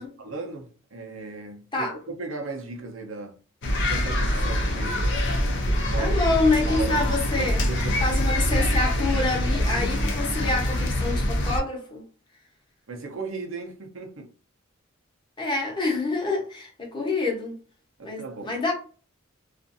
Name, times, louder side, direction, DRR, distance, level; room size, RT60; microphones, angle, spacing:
voice 1, 0.0-3.4 3.8-5.5 5.9-6.1 6.5-8.1 12.9-14.3 18.0-18.6, right 4 dB, 70° right, 0.6 m, -37 dB
sound 1, 3.6-11.6, left 1 dB, 60° left, 0.6 m, -24 dB
voice 2, 6.0-7.6 8.0-12.0 15.4-17.6 18.0-18.7, left 3 dB, 25° left, 0.9 m, -26 dB
2.5 x 2.4 x 2.6 m
head